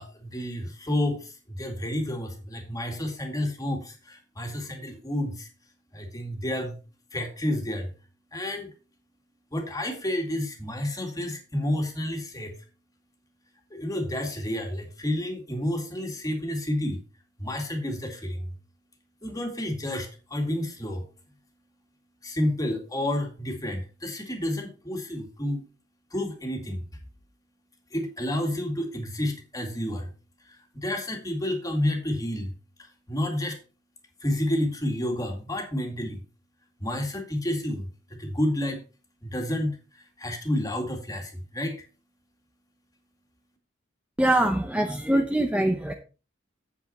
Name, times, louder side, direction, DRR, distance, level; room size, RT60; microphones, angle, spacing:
voice 1, 0.0-5.5 5.9-6.8 7.1-7.9 8.3-8.7 9.5-12.5 13.7-17.0 17.4-18.6 19.2-21.1 22.2-25.6 26.1-26.8 27.9-30.1 30.4-32.5 32.8-33.6 34.2-36.2 36.8-38.8 39.2-41.8, left 1 dB, 20° left, 3 dB, 2.1 m, -30 dB
voice 2, 44.2-45.9, right 1 dB, 5° right, 5 dB, 0.6 m, -23 dB
8.4 x 8.0 x 4.2 m, 0.34 s
head